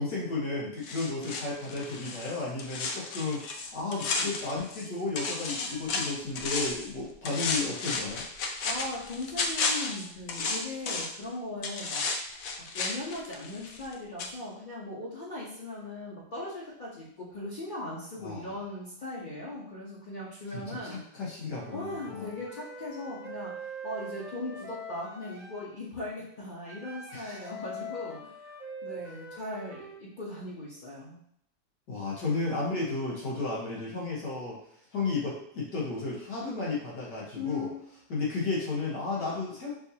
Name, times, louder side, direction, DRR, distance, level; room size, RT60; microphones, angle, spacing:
voice 1, 0.0-8.2 18.2-18.5 20.5-22.3 27.1-27.5 31.9-34.6 34.9-37.7 38.1-39.7, left 3 dB, 85° left, -5 dB, 2.0 m, -33 dB
sound 1, 0.8-4.9 5.2-6.9 7.3-11.2 11.6-13.9 14.2-14.3, left 4 dB, 70° left, 0.9 m, -33 dB
voice 2, 8.6-12.1 12.7-21.0 21.7-28.5 28.8-31.2 37.4-37.8, left 2 dB, 35° left, -7 dB, 0.9 m, -39 dB
Wind instrument woodwind instrument, 21.6-25.7 26.6-30.0, equal, 5° right, 0.4 m, -43 dB
5.5 x 2.8 x 2.8 m, 0.72 s
omnidirectional pair, 1.7 m